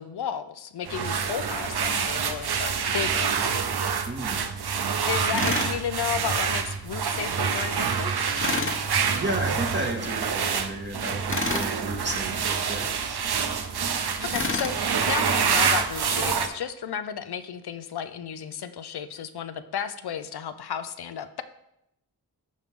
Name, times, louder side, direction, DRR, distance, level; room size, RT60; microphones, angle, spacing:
voice 1, 0.0-3.6 5.1-8.3 14.2-21.4, left 8 dB, 90° left, 11 dB, 0.6 m, -33 dB
sound 1, 0.9-16.5, right 6 dB, 85° right, 0.8 m, -27 dB
voice 2, 4.1-4.5 9.2-13.2, right 1 dB, 30° right, 1 dB, 1.7 m, -33 dB
Tools, 5.3-5.8 8.4-8.8 11.3-11.7 14.3-14.8, left 3 dB, 35° left, 1.0 m, -28 dB
13.5 x 5.5 x 3.6 m, 0.81 s
wide cardioid pair, 90°, 38 cm